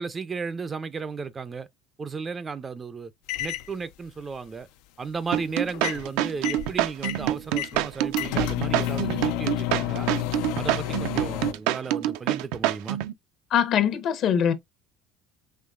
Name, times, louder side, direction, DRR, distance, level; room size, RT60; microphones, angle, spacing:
voice 1, 0.0-1.7 2.0-3.1 3.4-4.7 5.0-10.1 10.6-13.0, right 5 dB, 25° right, 0.4 m, -34 dB
sound 1, 3.3-3.7 5.7-6.1 6.4-11.5, left 14 dB, 80° left, 0.4 m, -30 dB
sound 2, 5.3-13.1, right 13 dB, 85° right, 0.5 m, -26 dB
voice 2, 13.5-14.5, left 8 dB, 50° left, 0.8 m, -22 dB
5.6 x 3.0 x 2.3 m
cardioid pair, 140°, 0 cm